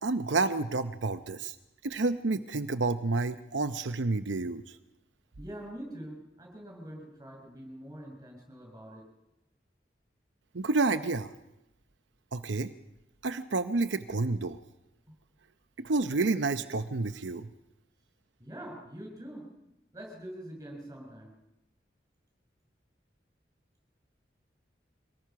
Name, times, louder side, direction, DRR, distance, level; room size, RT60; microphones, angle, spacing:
voice 1, 0.0-1.5 1.8-4.8 10.5-11.3 12.3-12.7 13.2-14.6 15.8-17.5, right 3 dB, 85° right, 10 dB, 0.8 m, -29 dB
voice 2, 5.4-9.0 18.4-19.5 19.9-21.3, right 1 dB, 20° right, 1 dB, 6.5 m, -44 dB
23.5 x 19.0 x 5.9 m, 0.93 s
head